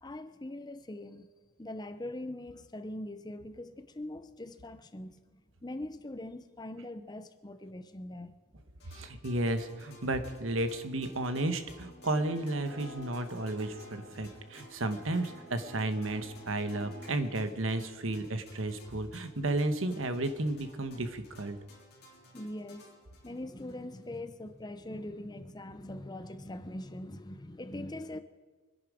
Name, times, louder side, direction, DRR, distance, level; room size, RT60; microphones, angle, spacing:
voice 1, 0.0-1.3 1.6-8.4 22.3-22.9 23.2-28.2, left 1 dB, 20° left, 0.7 m, -42 dB
sound 1, 8.8-24.2, left 1 dB, 50° left, 3.8 m, -57 dB
voice 2, 8.9-21.6, right 2 dB, 80° right, 1.3 m, -33 dB
sound 2, 11.5-17.1, equal, 55° right, 5.7 m, -51 dB
25.0 x 10.5 x 5.0 m
head